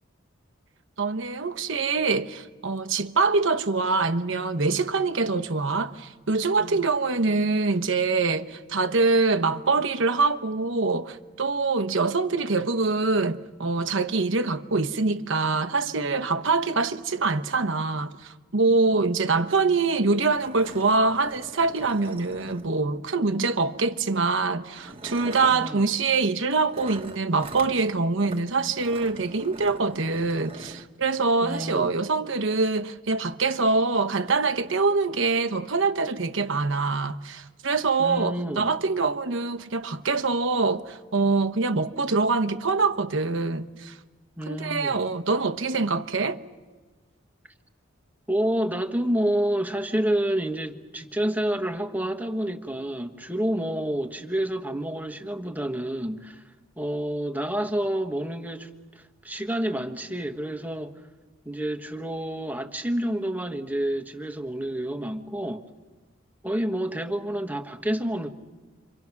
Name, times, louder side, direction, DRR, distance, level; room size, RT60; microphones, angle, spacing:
voice 1, 1.0-43.9 44.5-46.4, right 3 dB, 65° right, 1.1 m, -24 dB
sound 1, 19.5-19.6 19.8-19.9 20.2-23.0 24.0-24.2 24.7-25.7 26.7-27.8 28.2-28.4 28.7-30.9, right 2 dB, 30° right, 1.4 m, -42 dB
voice 2, 25.5-25.8 31.4-31.9 38.0-38.7 44.4-45.0 48.3-56.4 56.8-58.7 58.9-60.9 61.4-65.7 66.4-68.3, right 1 dB, 10° right, 1.3 m, -28 dB
30.0 x 25.0 x 6.0 m
head